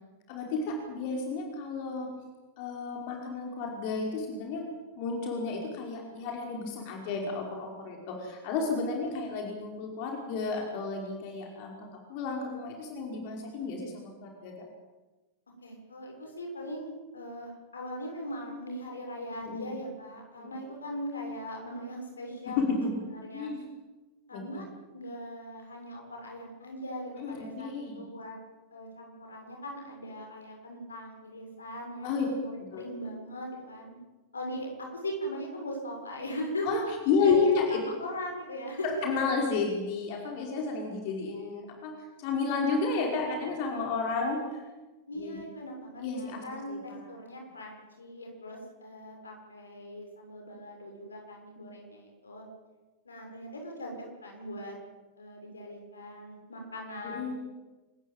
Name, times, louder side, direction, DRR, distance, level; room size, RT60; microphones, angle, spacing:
voice 1, 0.3-2.1 2.6-4.6 5.0-14.7 19.4-19.7 20.4-20.5 22.6-22.9 23.3-23.6 24.3-24.6 27.2-28.0 32.0-32.3 32.7-32.8 36.6-37.8 38.8-41.9 42.2-44.4 45.1-45.4 46.0-47.0 51.6-51.7 57.0-57.3, left 4 dB, 45° left, 1 dB, 5.2 m, -31 dB
voice 2, 15.6-22.6 23.2-23.5 24.3-24.6 24.9-28.4 28.7-34.0 34.3-36.7 37.2-38.9 45.1-52.4 53.0-54.8 55.2-57.3, equal, 75° left, 2 dB, 6.6 m, -40 dB
28.0 x 15.0 x 9.1 m, 1.2 s
figure-of-eight pair, 90°, 0 cm